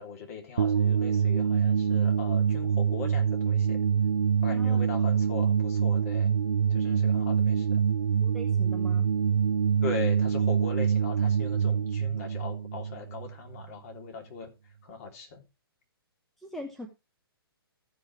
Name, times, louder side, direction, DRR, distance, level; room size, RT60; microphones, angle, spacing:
voice 1, 0.0-3.8 4.4-6.4 6.7-7.8 9.8-14.5 14.8-15.4, left 5 dB, 35° left, 2 dB, 3.3 m, -40 dB
sound 1, 0.6-13.7, right 7 dB, 70° right, 0.5 m, -25 dB
voice 2, 8.2-9.1 16.4-16.9, equal, ahead, 3 dB, 0.9 m, -41 dB
14.0 x 5.7 x 4.7 m, 0.27 s
figure-of-eight pair, 125°, 13 cm